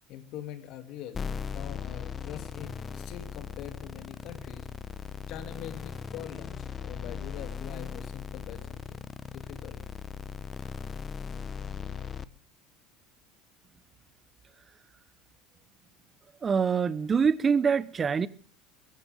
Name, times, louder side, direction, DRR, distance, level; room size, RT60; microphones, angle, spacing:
voice 1, 0.1-1.2 1.5-4.7 5.3-9.8, left 11 dB, 60° left, 2.8 m, -44 dB
sound 1, 1.1-12.2, left 6 dB, 30° left, 1.2 m, -38 dB
voice 2, 16.4-18.3, right 6 dB, 30° right, 1.0 m, -25 dB
22.5 x 15.5 x 3.7 m
hypercardioid pair, 75°, 0 cm